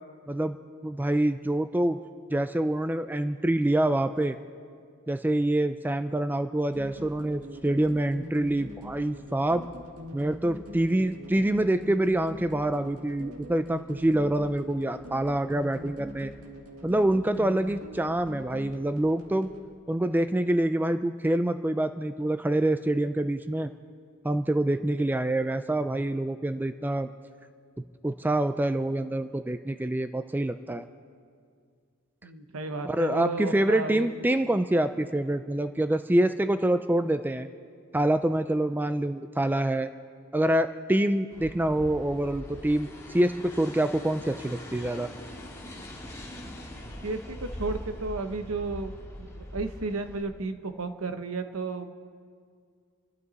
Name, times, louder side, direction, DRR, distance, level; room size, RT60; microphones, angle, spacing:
voice 1, 0.8-2.0 2.3-4.4 5.1-9.6 10.1-16.3 16.8-19.5 19.9-23.7 24.2-27.1 28.0-30.9 32.8-37.5 37.9-39.9 40.3-45.1, right 1 dB, 10° right, 10 dB, 0.3 m, -26 dB
sound 1, 6.7-19.7, equal, 90° right, 1.9 m, -43 dB
voice 2, 32.2-34.1 47.0-48.9 49.3-51.9, right 3 dB, 70° right, 8 dB, 1.0 m, -33 dB
sound 2, 41.3-50.2, left 1 dB, 15° left, 2.1 m, -42 dB
27.5 x 12.5 x 4.1 m, 2.1 s
head